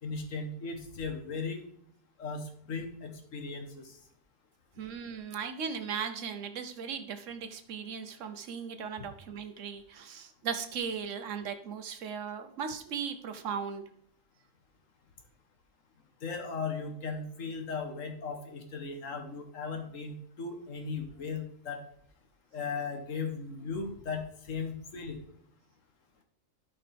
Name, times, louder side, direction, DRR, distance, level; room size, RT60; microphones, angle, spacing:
voice 1, 0.0-1.7 2.2-4.0 16.2-21.8 22.5-25.2, left 4 dB, 90° left, 5 dB, 1.6 m, -37 dB
voice 2, 4.8-13.8, right 6 dB, 75° right, 8 dB, 1.1 m, -37 dB
12.5 x 5.3 x 3.4 m, 0.68 s
omnidirectional pair, 1.3 m